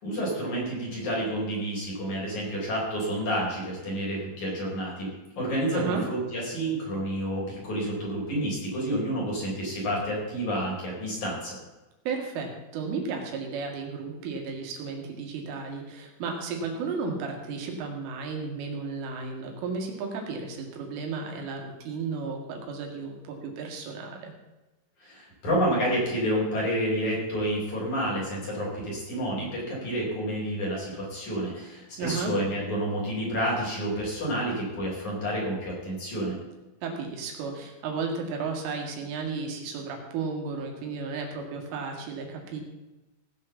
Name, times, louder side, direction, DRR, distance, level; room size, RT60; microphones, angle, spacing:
voice 1, 0.0-5.1 5.4-11.6 25.0-36.4, equal, 40° left, -4 dB, 5.2 m, -29 dB
voice 2, 5.7-6.0 12.1-24.3 32.0-32.3 36.8-42.6, right 4 dB, 80° right, 1 dB, 4.5 m, -33 dB
17.0 x 6.3 x 7.2 m, 1.1 s
omnidirectional pair, 5.7 m